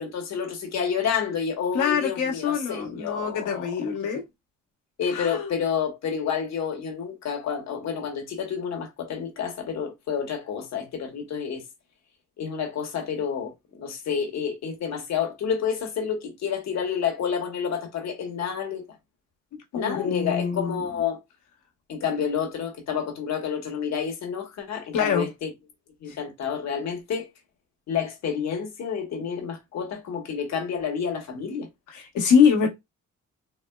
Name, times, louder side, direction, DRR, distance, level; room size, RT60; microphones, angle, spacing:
voice 1, 0.0-3.7 5.0-11.6 12.4-18.8 19.7-21.2 21.9-25.5 26.0-27.3 27.9-31.7, left 7 dB, 60° left, 1.3 m, -29 dB
voice 2, 1.7-4.3 5.1-5.5 19.7-20.8 24.9-25.3 26.1-26.2 31.9-32.7, left 6 dB, 85° left, 1.2 m, -24 dB
4.2 x 2.1 x 2.2 m
cardioid pair, 90°, 30 cm